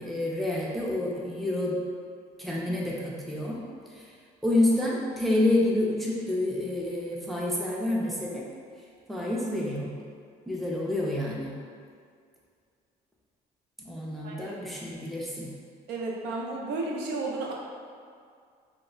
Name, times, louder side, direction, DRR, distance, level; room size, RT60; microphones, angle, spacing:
voice 1, 0.0-1.8 2.4-3.6 4.0-4.1 4.4-8.4 9.1-9.9 10.5-11.5 13.8-15.5, left 1 dB, ahead, -5 dB, 0.4 m, -28 dB
voice 2, 14.2-14.6 15.9-17.5, right 3 dB, 80° right, -2 dB, 0.5 m, -33 dB
2.1 x 2.0 x 3.8 m, 2.2 s
cardioid pair, 110°, 17 cm